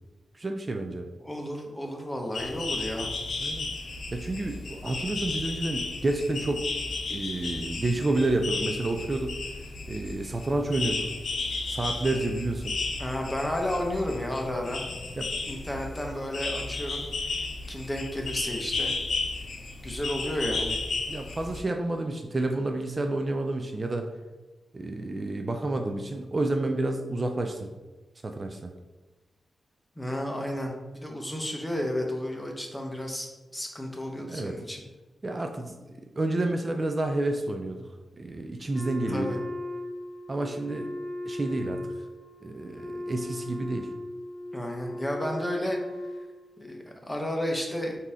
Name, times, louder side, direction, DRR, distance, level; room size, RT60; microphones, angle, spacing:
voice 1, 0.3-1.1 3.4-3.7 4.1-6.6 7.1-9.3 9.9-11.1 11.7-12.8 15.2-15.3 21.1-24.1 24.7-27.7 28.2-28.7 34.3-34.6 35.2-35.8 36.2-37.9 38.2-39.4 40.3-40.9 41.3-41.9 42.4-43.9, right 2 dB, 35° right, 4 dB, 0.4 m, -29 dB
voice 2, 1.2-3.1 13.0-14.8 15.5-17.3 17.7-18.9 19.8-20.8 30.0-34.8 39.1-39.4 44.5-45.8 46.6-48.0, left 1 dB, 10° left, 1 dB, 1.0 m, -32 dB
sound 1, 2.3-21.6, left 3 dB, 75° left, 0.5 m, -34 dB
Wind instrument woodwind instrument, 38.7-46.6, left 1 dB, 5° right, 0.8 m, -37 dB
3.7 x 2.8 x 4.8 m, 1.2 s
cardioid pair, 60°, 0 cm